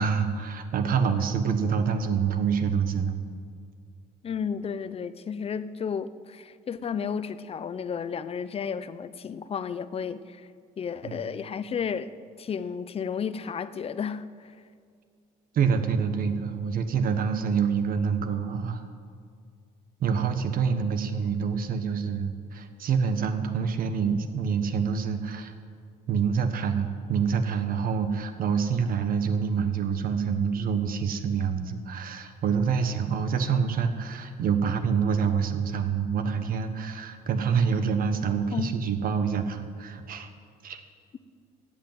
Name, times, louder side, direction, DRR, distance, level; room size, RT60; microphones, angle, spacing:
voice 1, 0.0-3.2 11.0-11.2 15.5-18.8 20.0-25.5 26.1-40.3 40.6-40.8, right 6 dB, 55° right, 1.3 m, -26 dB
voice 2, 4.2-10.5 10.8-14.5 38.5-38.7, left 6 dB, 35° left, 0.7 m, -33 dB
14.0 x 8.1 x 9.1 m
cardioid pair, 110°, 17 cm